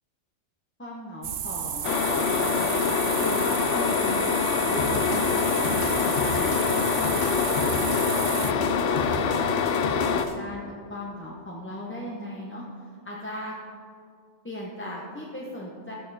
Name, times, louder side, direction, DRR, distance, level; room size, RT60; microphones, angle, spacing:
voice 1, 0.8-4.4 4.6-7.3 7.6-8.7 9.1-9.6 10.1-12.6 13.0-13.6 14.4-15.9, left 1 dB, 10° left, -4 dB, 0.9 m, -38 dB
sound 1, 1.2-8.5, right 10 dB, 60° right, 0.6 m, -32 dB
sound 2, 1.8-10.2, left 6 dB, 80° left, 1.0 m, -25 dB
sound 3, 4.8-10.3, left 1 dB, 60° left, 1.3 m, -34 dB
13.5 x 7.5 x 4.1 m, 2.2 s
omnidirectional pair, 1.2 m